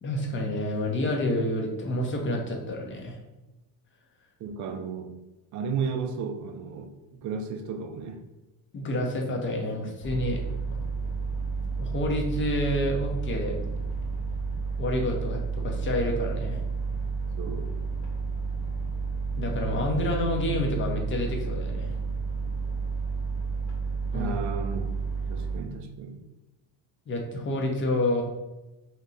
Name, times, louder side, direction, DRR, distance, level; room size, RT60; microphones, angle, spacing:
voice 1, 0.0-3.2 8.7-10.4 11.8-13.5 14.8-16.6 18.6-18.7 19.3-21.9 24.1-24.4 27.1-28.2, left 1 dB, 30° left, 1 dB, 0.6 m, -28 dB
voice 2, 4.4-5.1 5.5-6.9 7.2-8.2 17.4-17.8 24.1-24.9 25.3-26.2, right 5 dB, 45° right, 6 dB, 0.4 m, -33 dB
sound 1, 10.0-25.6, right 4 dB, 55° left, 1.0 m, -31 dB
2.8 x 2.2 x 3.8 m, 1.0 s
cardioid pair, 130°, 42 cm